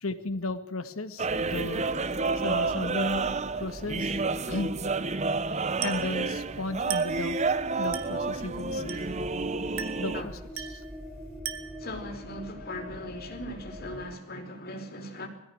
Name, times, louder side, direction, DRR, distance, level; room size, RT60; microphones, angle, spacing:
voice 1, 0.0-1.9 2.3-4.2 4.5-4.8 5.5-9.1 10.0-10.8, left 2 dB, 85° left, 9 dB, 2.0 m, -35 dB
sound 1, 1.2-10.2, right 4 dB, 35° right, 0.9 m, -30 dB
sound 2, 1.3-14.1, left 1 dB, ahead, 4.9 m, -44 dB
Glass, 5.8-6.2 6.9-7.3 7.9-8.2 8.9-9.2 9.8-10.1 10.6-10.9 11.5-11.9, right 10 dB, 80° right, 2.2 m, -37 dB
voice 2, 11.8-15.3, left 1 dB, 45° left, 4 dB, 4.9 m, -39 dB
21.0 x 16.0 x 9.0 m, 0.86 s
head